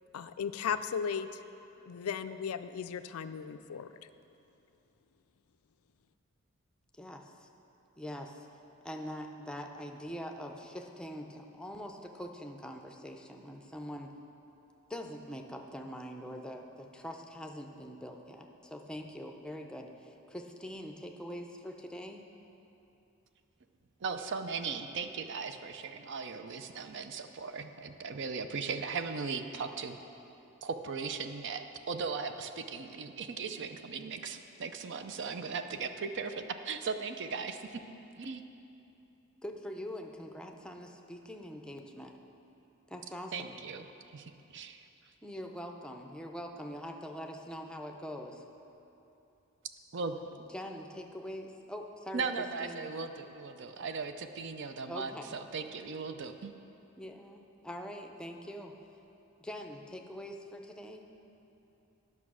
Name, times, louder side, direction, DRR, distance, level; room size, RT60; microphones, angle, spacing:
voice 1, 0.1-1.4 1.8-4.1, left 7 dB, 80° left, 11 dB, 0.4 m, -36 dB
voice 2, 7.0-7.5 8.0-8.5 8.8-14.1 14.9-22.3 35.3-35.4 39.4-42.1 42.9-43.5 45.2-48.4 50.5-52.3 52.6-52.8 54.9-55.4 57.0-58.7 59.4-61.1, equal, 5° left, 3 dB, 0.6 m, -43 dB
voice 3, 24.0-30.0 30.6-37.8 38.2-38.4 43.3-43.9 44.1-44.9 49.9-50.2 52.1-56.5, right 5 dB, 60° right, 8 dB, 0.5 m, -38 dB
10.5 x 5.9 x 6.2 m, 2.9 s
head